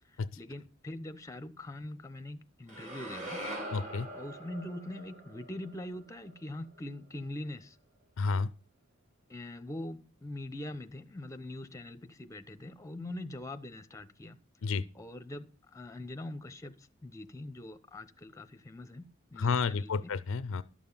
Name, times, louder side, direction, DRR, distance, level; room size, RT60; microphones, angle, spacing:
voice 1, 0.1-3.4 4.1-7.8 9.3-14.4 14.9-20.1, left 1 dB, 15° left, 0.7 m, -43 dB
sound 1, 2.7-6.9, right 1 dB, 40° right, 3.6 m, -43 dB
voice 2, 3.7-4.1 8.2-8.5 14.6-14.8 19.4-20.6, left 4 dB, 65° left, 0.5 m, -30 dB
11.5 x 6.9 x 5.5 m
head